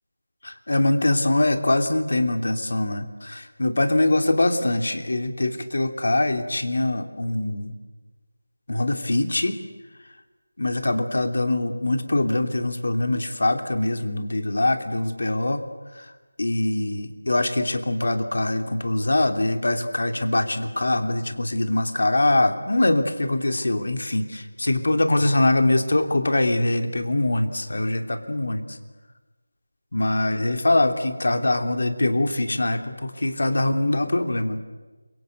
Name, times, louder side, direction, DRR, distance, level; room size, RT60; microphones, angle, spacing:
voice 1, 0.4-7.7 8.7-9.6 10.6-15.6 16.4-28.8 29.9-34.6, left 2 dB, 65° left, 7 dB, 3.1 m, -23 dB
29.0 x 24.0 x 8.0 m, 1.2 s
figure-of-eight pair, 170°, 0 cm